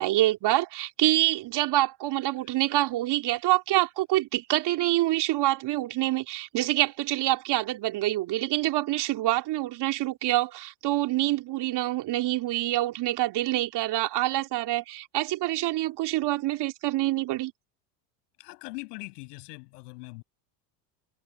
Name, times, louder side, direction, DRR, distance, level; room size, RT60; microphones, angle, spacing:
voice 1, 0.0-17.5, right 16 dB, 55° right, 3.2 m, -26 dB
voice 2, 18.4-20.2, left 27 dB, 70° left, 7.1 m, -41 dB
hypercardioid pair, 80°, 49 cm